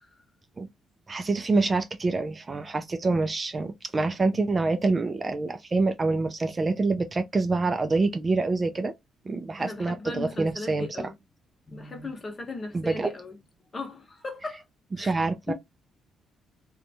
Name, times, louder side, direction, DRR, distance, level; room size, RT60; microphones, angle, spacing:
voice 1, 1.1-8.9 9.3-11.1 12.7-13.1 15.0-15.5, right 3 dB, 30° right, 0.3 m, -26 dB
voice 2, 9.6-11.1 11.7-13.4 13.7-14.6 14.9-15.1 15.5-15.6, left 3 dB, 35° left, 1.0 m, -37 dB
2.6 x 2.2 x 2.6 m
cardioid pair, 90°, 0 cm